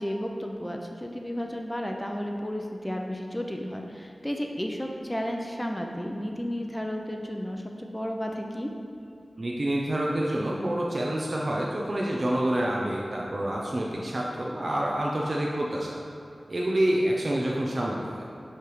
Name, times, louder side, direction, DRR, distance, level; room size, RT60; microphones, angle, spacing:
voice 1, 0.0-8.7, equal, 15° left, 2 dB, 0.6 m, -33 dB
voice 2, 9.4-16.0 16.5-18.2, right 1 dB, 45° right, -3 dB, 0.6 m, -27 dB
7.3 x 3.4 x 4.7 m, 2.7 s
wide cardioid pair, 55°, 0 cm